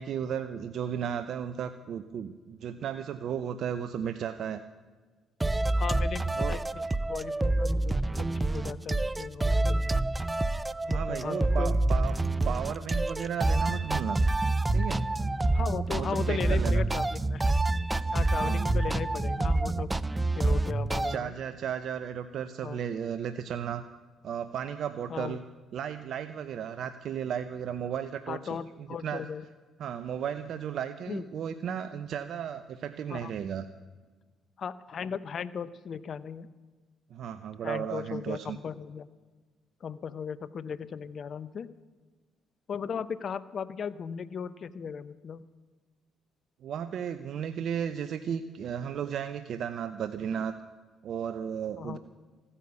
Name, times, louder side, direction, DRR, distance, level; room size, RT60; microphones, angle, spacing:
voice 1, 0.0-4.6 6.4-6.6 10.9-12.2 12.4-14.2 14.7-15.1 15.9-16.9 18.3-18.7 21.0-23.8 24.2-25.4 25.7-28.4 28.8-29.2 29.8-33.6 37.1-38.6 46.6-50.5 51.0-52.0, right 8 dB, 65° right, 11 dB, 0.7 m, -34 dB
sound 1, 5.4-21.2, right 2 dB, 20° right, 0.6 m, -27 dB
voice 2, 5.8-10.0 10.8-11.8 15.5-17.4 18.1-19.9 20.3-21.3 22.6-22.8 25.1-25.4 28.3-29.5 31.1-31.2 33.1-33.3 34.6-36.5 37.6-39.1 39.8-41.7 42.7-45.5 51.8-52.0, left 7 dB, 55° left, 17 dB, 0.7 m, -37 dB
15.0 x 9.9 x 8.1 m, 1.4 s
supercardioid pair, 55°, 0 cm